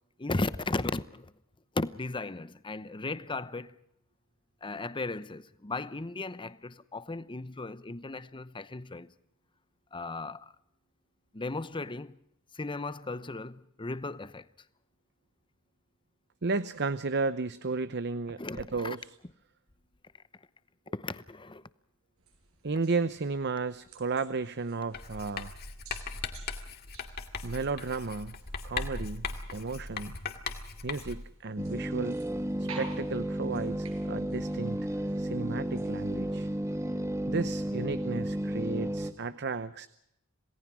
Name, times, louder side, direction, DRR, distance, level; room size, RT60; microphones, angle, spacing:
voice 1, 0.2-1.3 1.7-3.8 4.6-9.1 9.9-10.5 11.3-12.2 12.5-14.5 18.4-19.0 20.9-21.7, left 2 dB, 25° left, 0.8 m, -36 dB
voice 2, 16.4-19.0 22.6-25.5 27.4-28.4 28.6-30.2 30.8-32.2 32.6-34.8 35.2-36.5 37.3-39.9, right 4 dB, 50° right, 0.8 m, -33 dB
sound 1, 22.2-36.4, right 4 dB, 80° right, 7.3 m, -53 dB
Writing, 24.9-31.3, left 4 dB, 45° left, 2.2 m, -39 dB
sound 2, 31.6-39.1, right 1 dB, 15° right, 1.5 m, -33 dB
27.5 x 18.5 x 6.1 m
head